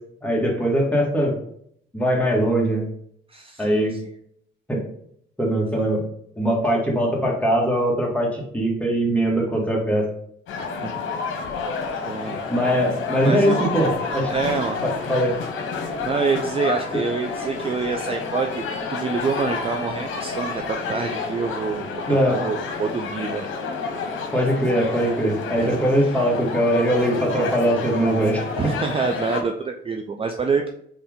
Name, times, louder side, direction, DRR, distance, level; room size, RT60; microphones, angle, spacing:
voice 1, 0.2-1.4 1.9-2.8 3.6-4.0 4.7-4.8 5.4-6.0 6.4-10.0 12.5-14.3 14.8-15.4 22.1-22.4 24.3-28.4, right 1 dB, 5° left, -2 dB, 1.7 m, -21 dB
voice 2, 3.3-4.0 5.7-5.9 10.6-10.9 12.1-12.4 13.2-13.7 14.3-14.8 16.0-18.6 18.9-23.5 25.6-26.1 27.2-27.6 28.6-30.7, right 5 dB, 30° right, 4 dB, 0.4 m, -27 dB
sound 1, 10.5-29.4, left 4 dB, 75° left, 0.9 m, -29 dB
4.2 x 3.3 x 3.6 m, 0.67 s
cardioid pair, 90°, 20 cm